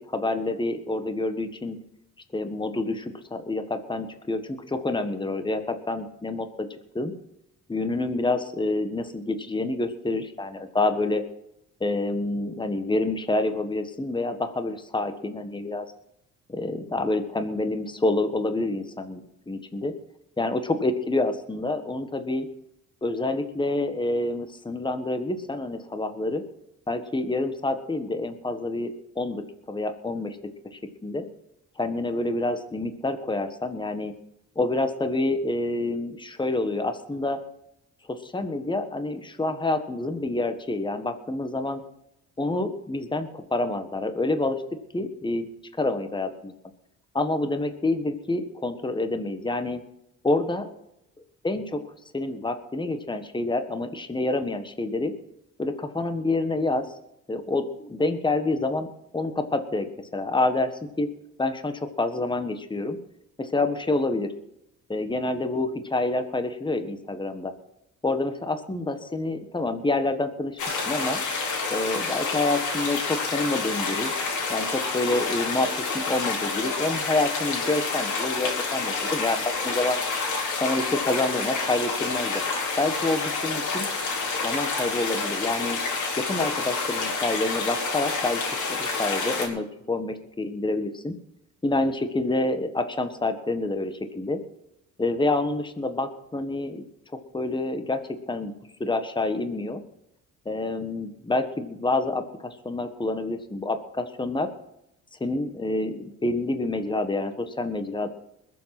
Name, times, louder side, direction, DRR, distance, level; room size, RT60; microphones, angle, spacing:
voice 1, 0.1-1.8 2.3-7.1 7.7-11.2 11.8-15.8 16.5-19.9 20.4-22.5 23.0-26.4 26.9-30.4 30.7-31.2 31.8-34.1 34.5-37.4 38.1-41.8 42.4-44.6 44.9-45.5 45.8-46.5 47.1-49.8 50.2-50.7 51.4-51.8 52.1-55.1 55.6-56.9 57.3-58.9 59.1-60.7 61.0-61.1 61.4-63.0 63.4-64.3 64.9-67.5 68.0-71.2 71.7-74.1 74.5-80.0 80.6-82.4 82.8-83.9 84.4-85.8 86.2-91.1 91.6-94.4 95.0-96.8 97.3-98.5 98.8-99.8 100.4-104.5 105.2-108.1, left 2 dB, 15° left, 8 dB, 1.6 m, -27 dB
sound 1, 70.6-89.5, left 4 dB, 75° left, 4.2 m, -28 dB
21.0 x 7.7 x 6.0 m, 0.82 s
cardioid pair, 90°, 30 cm